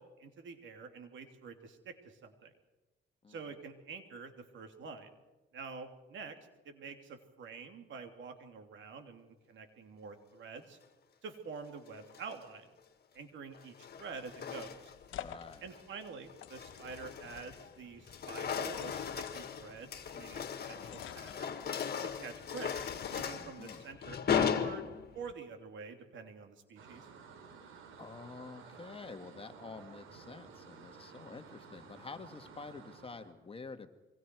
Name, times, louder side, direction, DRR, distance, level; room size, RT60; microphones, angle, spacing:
voice 1, 0.0-2.5 3.3-5.1 5.5-6.4 6.6-10.8 11.2-12.7 13.1-14.9 15.6-21.5 22.0-22.8 23.1-24.9 25.1-27.1, right 5 dB, 70° right, 6 dB, 3.2 m, -47 dB
sound 1, 11.9-12.4 13.5-15.1 15.5-15.8 16.3-17.7 18.0-25.3, left 7 dB, 55° left, 2.1 m, -37 dB
sound 2, 14.0-23.8, left 10 dB, 75° left, 1.4 m, -51 dB
voice 2, 15.2-15.7 23.4-23.8 28.0-33.9, left 4 dB, 30° left, 8 dB, 1.8 m, -48 dB
sound 3, 26.8-33.3, right 5 dB, 90° right, 3.4 m, -54 dB
27.5 x 23.5 x 4.8 m, 1.1 s
cardioid pair, 90°, 20 cm